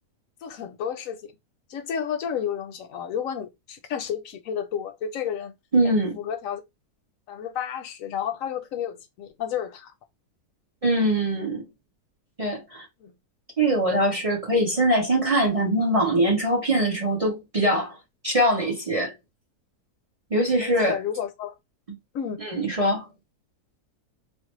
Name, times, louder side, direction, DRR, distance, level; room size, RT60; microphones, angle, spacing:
voice 1, 0.4-1.3 1.7-5.5 5.8-6.6 7.3-9.9 13.0-13.1 20.6-21.6 22.1-22.4, left 8 dB, 65° left, 0.9 m, -31 dB
voice 2, 5.7-6.1 10.8-11.6 12.4-12.9 13.6-18.0 18.2-19.1 20.3-21.0 22.4-23.1, right 1 dB, 30° right, 0.7 m, -22 dB
3.3 x 2.0 x 3.0 m
omnidirectional pair, 1.7 m